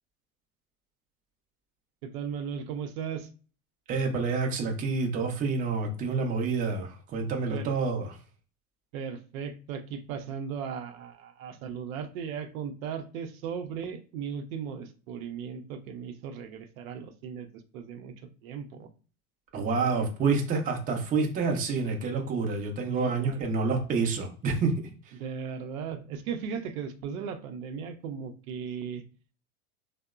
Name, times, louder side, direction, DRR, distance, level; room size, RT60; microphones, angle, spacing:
voice 1, 2.0-3.3 7.5-7.7 8.9-18.9 19.7-20.1 22.9-23.4 25.1-29.0, right 7 dB, 70° right, 7 dB, 0.6 m, -37 dB
voice 2, 3.9-8.2 19.5-24.7, right 4 dB, 20° right, 2 dB, 0.5 m, -28 dB
2.8 x 2.0 x 2.3 m, 0.38 s
hypercardioid pair, 100°, 44 cm